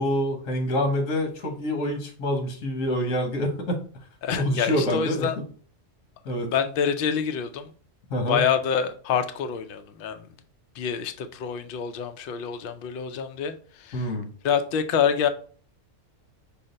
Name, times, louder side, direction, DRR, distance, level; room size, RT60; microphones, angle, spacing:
voice 1, 0.0-3.8 4.4-5.3 6.2-6.5 8.1-8.4 13.9-14.3, equal, 85° left, 1.3 m, -26 dB
voice 2, 4.2-5.4 6.5-7.7 8.3-10.3 10.7-14.1 14.4-15.3, left 7 dB, 60° left, 0.6 m, -26 dB
5.7 x 2.1 x 3.8 m
omnidirectional pair, 1.3 m